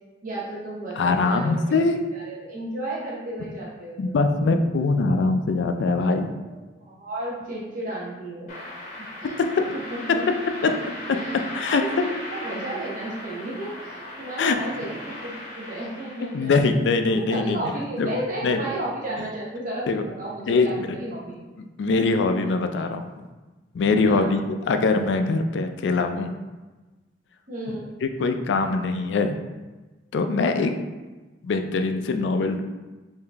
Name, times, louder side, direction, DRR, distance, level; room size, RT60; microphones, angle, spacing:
voice 1, 0.2-4.3 6.5-8.7 9.2-9.4 9.7-10.2 10.6-10.7 11.1-11.4 11.7-16.6 17.1-21.4 24.0-24.3 27.5-27.9 30.5-30.9, right 1 dB, 50° right, -6 dB, 0.9 m, -33 dB
voice 2, 1.0-2.0 4.0-6.3 9.4-9.6 10.1-10.2 10.6-10.7 11.5-12.1 14.4-14.6 16.2-17.6 18.0-18.1 18.4-18.6 19.9-20.0 20.5-21.0 21.8-23.1 23.7-24.4 24.7-26.3 27.7-27.8 28.0-29.4 30.1-30.7 31.4-32.6, left 3 dB, 80° left, 7 dB, 0.3 m, -22 dB
sound 1, 8.5-16.6, left 1 dB, 45° left, 0.8 m, -38 dB
3.7 x 2.7 x 3.3 m, 1.2 s
head